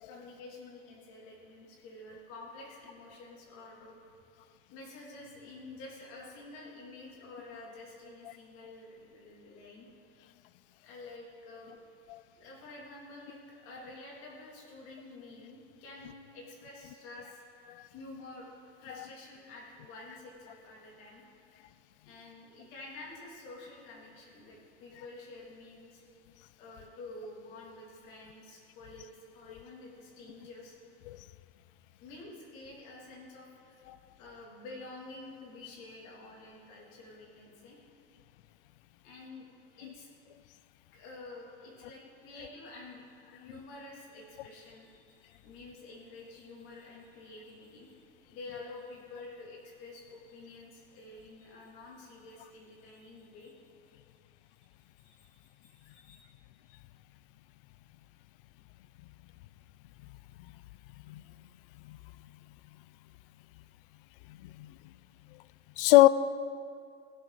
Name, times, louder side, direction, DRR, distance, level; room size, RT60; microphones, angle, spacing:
voice 1, 0.1-4.0 4.7-9.9 10.8-11.7 12.3-17.4 17.9-18.5 18.8-21.2 22.0-26.0 26.6-30.8 32.0-33.8 34.2-37.8 39.0-39.5 39.8-40.1 40.9-47.9 48.2-53.5 55.0-56.2, left 2 dB, 45° left, 3.0 m, -49 dB
voice 2, 65.8-66.1, left 18 dB, 60° left, 0.5 m, -22 dB
16.0 x 11.5 x 4.1 m
supercardioid pair, 180°, 31 cm